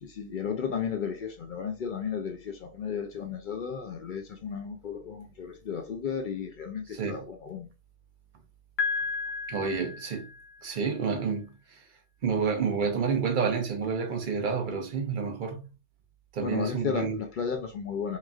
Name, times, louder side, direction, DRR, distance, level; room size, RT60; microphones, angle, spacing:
voice 1, 0.0-7.7 16.4-18.2, left 6 dB, 60° left, 0.6 m, -34 dB
voice 2, 6.9-7.2 9.5-10.3 10.6-11.5 12.2-15.6 16.3-17.2, right 5 dB, 55° right, 0.7 m, -29 dB
Piano, 8.8-10.7, left 4 dB, 80° left, 0.9 m, -33 dB
3.0 x 2.3 x 2.3 m
omnidirectional pair, 1.1 m